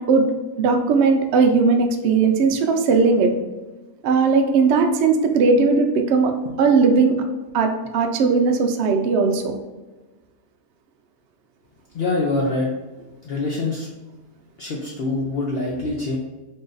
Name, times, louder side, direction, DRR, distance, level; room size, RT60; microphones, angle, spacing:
voice 1, 0.6-3.3 4.0-6.3 6.6-7.1 7.5-9.6, right 4 dB, 85° right, 4 dB, 0.5 m, -18 dB
voice 2, 11.9-12.7 13.2-13.9 14.6-16.2, left 2 dB, 80° left, -3 dB, 0.5 m, -24 dB
3.7 x 2.5 x 3.8 m, 1.2 s
omnidirectional pair, 1.7 m